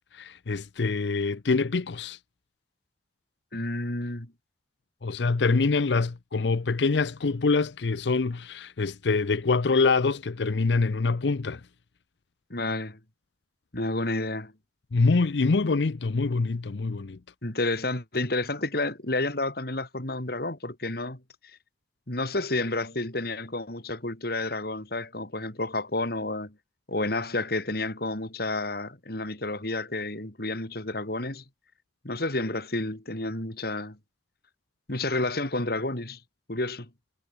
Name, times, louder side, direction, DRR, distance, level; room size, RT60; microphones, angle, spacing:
voice 1, 0.1-2.2 5.0-11.6 14.9-17.2, left 4 dB, 75° left, 0.6 m, -25 dB
voice 2, 3.5-4.3 12.5-13.0 13.7-14.5 17.4-21.2 22.1-26.5 26.9-31.4 32.0-34.0 34.9-36.2 36.5-36.9, left 2 dB, 60° left, 3.2 m, -30 dB
head